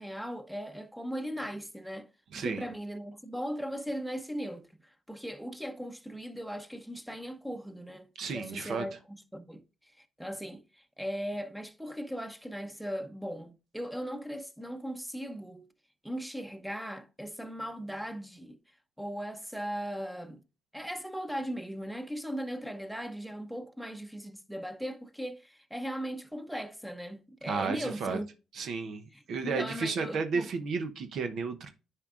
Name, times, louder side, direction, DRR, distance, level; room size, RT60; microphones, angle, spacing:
voice 1, 0.0-2.1 2.3-15.7 16.0-18.6 19.0-20.4 20.7-28.3 29.1-30.5, equal, ahead, 0.8 m, -38 dB
voice 2, 2.3-2.6 8.2-8.8 27.5-28.2 28.6-29.0 29.3-31.7, right 5 dB, 65° right, 0.8 m, -32 dB
9.8 x 4.5 x 2.5 m
cardioid pair, 90°, 0 cm